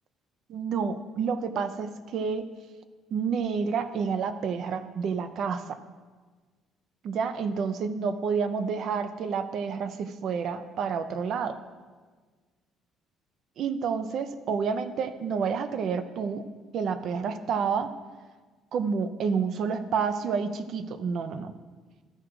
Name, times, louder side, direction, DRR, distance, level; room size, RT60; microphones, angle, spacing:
voice 1, 0.5-2.5 3.1-5.8 7.0-11.6 13.6-16.4 16.7-17.9 18.7-21.5, right 6 dB, 60° right, 11 dB, 0.6 m, -29 dB
13.0 x 4.9 x 4.8 m, 1.4 s
cardioid pair, 120°, 0 cm